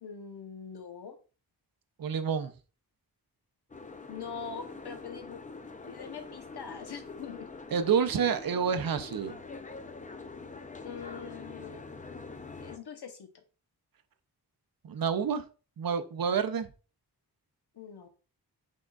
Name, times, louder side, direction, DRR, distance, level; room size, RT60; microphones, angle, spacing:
voice 1, 0.0-1.2 4.1-5.4 5.8-7.5 10.8-11.8 12.6-13.3 17.7-18.1, left 6 dB, 75° left, 6 dB, 0.9 m, -43 dB
voice 2, 2.0-2.5 7.7-9.3 14.8-15.4 15.8-16.7, right 6 dB, 60° right, 10 dB, 0.5 m, -28 dB
Boat Water vehicle, 3.7-12.8, left 3 dB, 20° left, 0.4 m, -45 dB
6.2 x 3.6 x 2.3 m, 0.35 s
wide cardioid pair, 120°, 40 cm